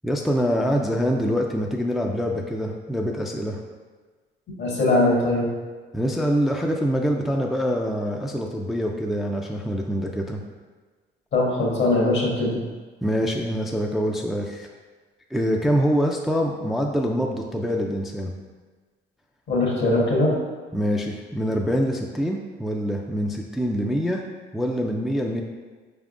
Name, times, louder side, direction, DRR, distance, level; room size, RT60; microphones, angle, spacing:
voice 1, 0.0-3.6 5.9-10.4 13.0-14.7 15.3-18.3 20.7-24.2 24.5-25.4, equal, ahead, 1 dB, 0.3 m, -25 dB
voice 2, 4.6-5.5 11.3-12.6 19.5-20.3, left 2 dB, 65° left, -3 dB, 1.3 m, -21 dB
4.5 x 3.5 x 2.5 m, 1.4 s
cardioid pair, 90°, 20 cm